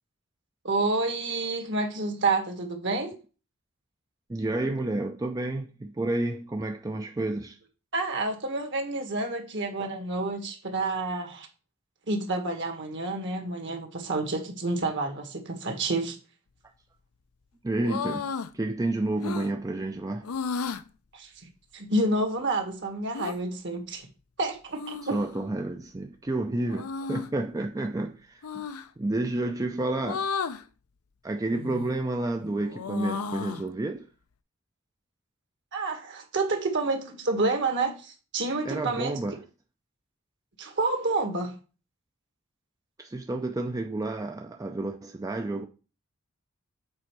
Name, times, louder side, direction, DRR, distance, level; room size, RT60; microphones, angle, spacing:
voice 1, 0.6-3.1 7.9-11.5 12.1-16.2 21.1-24.1 24.4-25.2 35.7-39.2 40.6-41.5, right 2 dB, 55° right, 1.6 m, -29 dB
voice 2, 4.3-7.6 17.6-20.3 25.1-28.4 29.0-30.3 31.2-34.1 38.7-39.3 43.0-45.7, right 2 dB, 15° right, 0.4 m, -30 dB
sound 1, 17.8-18.5 19.2-19.5 20.2-20.8 23.1-23.4 24.7-25.4 26.7-27.3 28.4-28.9 30.0-30.6 31.5-32.0 32.4-33.7, left 5 dB, 85° left, 0.5 m, -33 dB
7.5 x 4.4 x 4.6 m
head